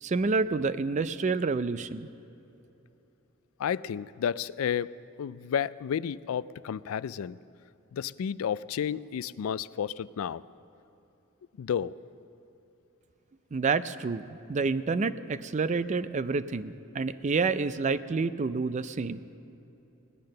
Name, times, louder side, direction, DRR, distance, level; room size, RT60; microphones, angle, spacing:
voice 1, 0.0-2.1 13.5-19.2, right 4 dB, 35° right, 14 dB, 0.4 m, -28 dB
voice 2, 3.6-4.9 5.2-7.4 7.9-10.4 11.6-11.9, left 8 dB, 85° left, 18 dB, 0.3 m, -31 dB
18.0 x 10.5 x 6.5 m, 2.9 s
head